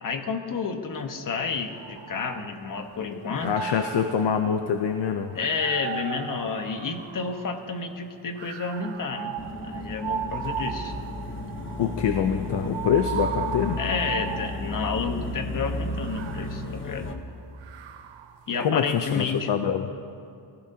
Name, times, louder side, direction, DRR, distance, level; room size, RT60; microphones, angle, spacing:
voice 1, 0.0-3.6 5.3-9.4 9.6-10.9 13.8-17.2 18.5-19.5, left 5 dB, 45° left, 5 dB, 1.3 m, -30 dB
sound 1, 1.7-2.9 3.3-7.7 8.4-15.0 15.8-18.4, right 7 dB, 75° right, 1.0 m, -36 dB
voice 2, 3.4-5.4 11.8-13.8 18.6-19.9, left 7 dB, 60° left, 6 dB, 0.8 m, -25 dB
sound 2, 9.4-17.2, left 1 dB, 25° left, 1.0 m, -34 dB
24.0 x 16.0 x 2.9 m, 2.5 s
cardioid pair, 140°, 46 cm